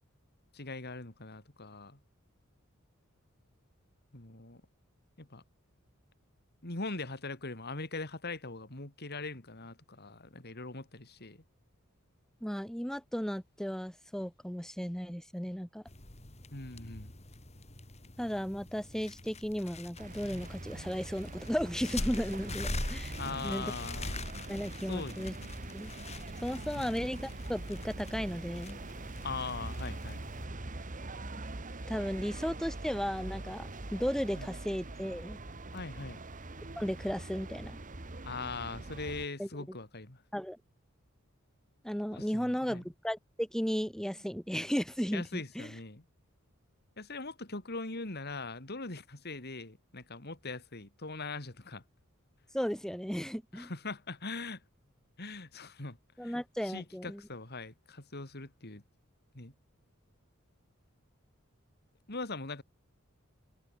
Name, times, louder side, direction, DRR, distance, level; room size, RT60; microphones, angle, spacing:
voice 1, 0.5-2.0 4.1-4.6 5.2-5.4 6.6-11.4 16.5-17.1 23.2-24.3 24.9-25.5 26.7-26.9 29.2-30.2 34.4-34.5 35.7-36.2 38.2-40.2 42.1-42.8 45.1-46.0 47.0-51.8 53.5-54.6 55.2-56.4 56.6-58.8 59.3-59.5 62.1-62.6, left 3 dB, 50° left, 3.2 m, -41 dB
voice 2, 12.4-15.8 18.2-23.1 23.4-23.7 24.5-25.3 25.7-25.9 26.4-28.8 31.9-35.4 36.8-37.8 39.4-39.5 40.3-40.6 41.8-45.7 52.5-53.7 56.2-57.2, equal, 5° left, 1.8 m, -35 dB
sound 1, 15.9-30.4, left 2 dB, 30° left, 3.3 m, -44 dB
sound 2, 20.0-39.3, right 2 dB, 40° right, 1.6 m, -43 dB
open air
head